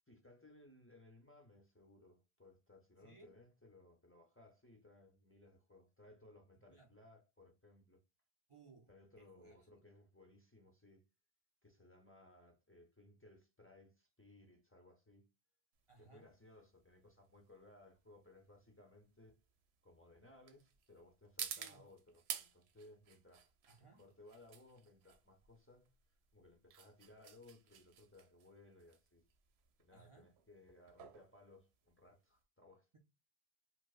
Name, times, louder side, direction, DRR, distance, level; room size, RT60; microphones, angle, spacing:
voice 1, 0.1-8.0 8.9-11.1 11.6-15.3 16.0-19.4 19.8-23.5 23.9-25.9 26.3-29.2 29.8-32.9, left 2 dB, 15° left, 0.5 m, -62 dB
voice 2, 3.0-3.4 6.7-6.9 8.5-8.9 9.2-9.7 15.9-16.3 21.4-21.9 23.7-24.0 29.9-30.3 32.9-33.0, right 4 dB, 45° right, 0.4 m, -64 dB
sound 1, 15.8-32.4, right 8 dB, 80° right, 0.8 m, -52 dB
4.7 x 2.0 x 2.4 m
omnidirectional pair, 1.1 m